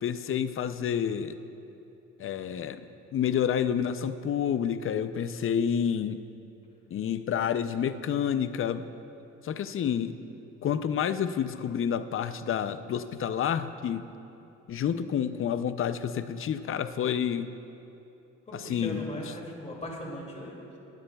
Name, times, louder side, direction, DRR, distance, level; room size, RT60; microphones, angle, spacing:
voice 1, 0.0-1.3 2.2-2.9 3.1-6.2 6.9-8.9 9.4-10.2 10.6-14.1 14.7-17.5 18.5-19.1, left 8 dB, 45° left, 11 dB, 0.5 m, -29 dB
voice 2, 18.5-20.8, equal, 20° left, -1 dB, 2.5 m, -39 dB
20.5 x 9.7 x 2.3 m, 2.8 s
cardioid pair, 90°, 30 cm